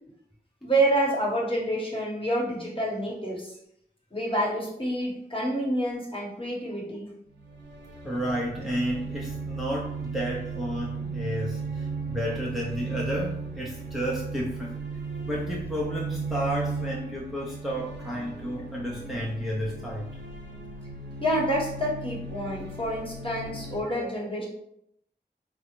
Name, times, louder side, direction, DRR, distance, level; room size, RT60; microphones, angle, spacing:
voice 1, 0.6-3.6 4.1-7.1 21.2-24.5, right 1 dB, 30° left, -4 dB, 1.0 m, -28 dB
sound 1, 7.3-23.8, right 4 dB, 85° right, 0.6 m, -36 dB
voice 2, 8.0-14.8 15.3-20.1, equal, ahead, -4 dB, 0.5 m, -32 dB
3.7 x 2.1 x 2.9 m, 0.75 s
wide cardioid pair, 45°, 18 cm